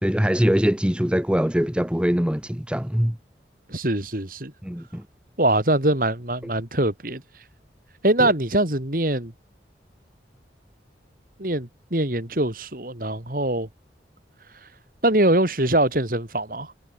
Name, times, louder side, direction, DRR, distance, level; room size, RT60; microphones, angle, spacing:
voice 1, 0.0-3.2 4.6-5.0 6.4-6.5 8.2-8.3, equal, 5° right, 0.9 m, -22 dB
voice 2, 3.7-4.5 5.4-7.2 8.0-9.3 11.4-13.7 15.0-16.7, right 1 dB, 50° right, 3.4 m, -23 dB
head